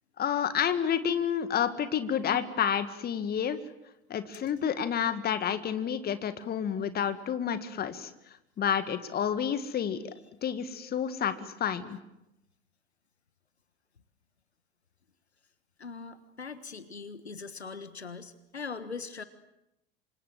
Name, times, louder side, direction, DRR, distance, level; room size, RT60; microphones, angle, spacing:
voice 1, 0.2-3.6 4.1-8.1 8.6-10.1 10.4-12.0, left 8 dB, 30° left, 11 dB, 2.0 m, -29 dB
voice 2, 15.8-19.2, left 5 dB, 80° left, 13 dB, 1.5 m, -41 dB
28.0 x 25.5 x 7.6 m, 0.88 s
figure-of-eight pair, 75°, 32 cm